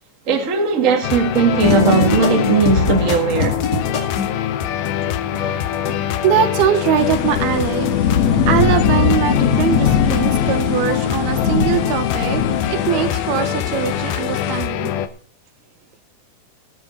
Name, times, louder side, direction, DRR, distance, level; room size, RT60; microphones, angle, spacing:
voice 1, 0.3-3.6, right 5 dB, 35° right, 1.2 m, -18 dB
sound 1, 1.0-15.1, left 11 dB, 80° left, 2.6 m, -24 dB
sound 2, 1.6-4.4, left 3 dB, 35° left, 2.1 m, -20 dB
voice 2, 5.3-8.2 8.5-12.4 12.7-15.0, right 9 dB, 85° right, 3.2 m, -22 dB
sound 3, 6.9-14.7, left 7 dB, 60° left, 2.0 m, -21 dB
19.0 x 8.5 x 4.0 m
omnidirectional pair, 4.4 m